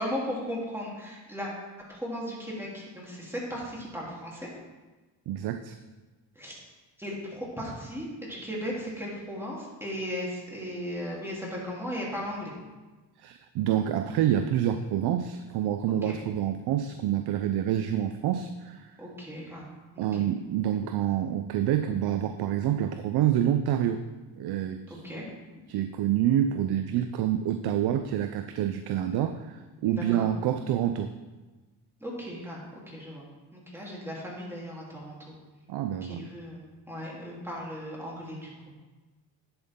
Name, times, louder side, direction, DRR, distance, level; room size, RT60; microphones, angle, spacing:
voice 1, 0.0-1.5 1.9-4.5 6.4-6.6 7.0-12.5 16.0-16.2 19.0-19.7 19.9-20.1 24.9-25.3 29.8-30.3 32.0-33.3 33.5-35.3 36.0-38.5, equal, 5° right, -5 dB, 3.5 m, -36 dB
voice 2, 5.3-5.7 13.2-18.9 20.0-24.0 24.4-25.0 25.7-31.1 35.7-36.3, right 10 dB, 65° right, 8 dB, 0.7 m, -27 dB
11.0 x 8.0 x 3.8 m, 1.2 s
cardioid pair, 95°, 41 cm